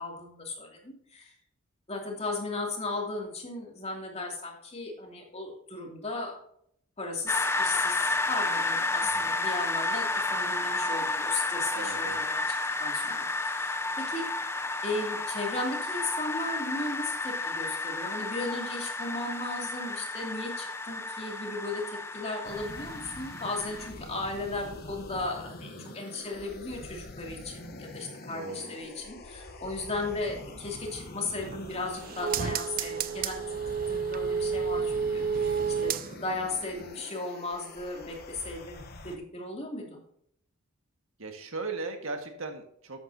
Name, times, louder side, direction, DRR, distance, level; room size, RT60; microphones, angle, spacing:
voice 1, 0.0-1.3 1.9-6.3 7.0-12.4 12.8-14.2 14.8-40.0, left 2 dB, 30° left, 0 dB, 2.7 m, -36 dB
sound 1, 7.3-23.9, left 2 dB, 10° left, 0.6 m, -31 dB
voice 2, 9.0-9.4 11.7-12.2 25.6-26.0 28.3-28.8 35.1-35.5 41.2-43.0, right 3 dB, 75° right, 4 dB, 1.7 m, -39 dB
sound 2, 22.4-39.2, left 2 dB, 50° left, 1.1 m, -45 dB
sound 3, 31.3-36.5 36.8-36.9, right 6 dB, 45° right, 0.5 m, -31 dB
13.0 x 9.3 x 2.8 m, 0.67 s
head